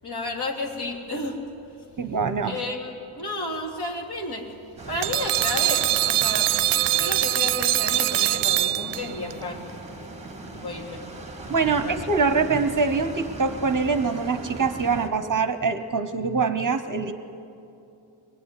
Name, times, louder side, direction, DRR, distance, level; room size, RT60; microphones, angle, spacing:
voice 1, 0.0-1.4 2.5-4.5 4.9-6.5 6.9-9.7 10.5-11.1 11.7-12.0, left 2 dB, 50° left, 0 dB, 3.5 m, -32 dB
voice 2, 2.0-2.6 11.5-17.1, right 4 dB, 40° right, 10 dB, 1.0 m, -24 dB
sound 1, 4.8-15.1, right 2 dB, 15° right, 2.2 m, -39 dB
sound 2, 5.0-9.3, right 14 dB, 75° right, 0.5 m, -23 dB
23.0 x 21.0 x 9.7 m, 2.7 s
wide cardioid pair, 160°, 50 cm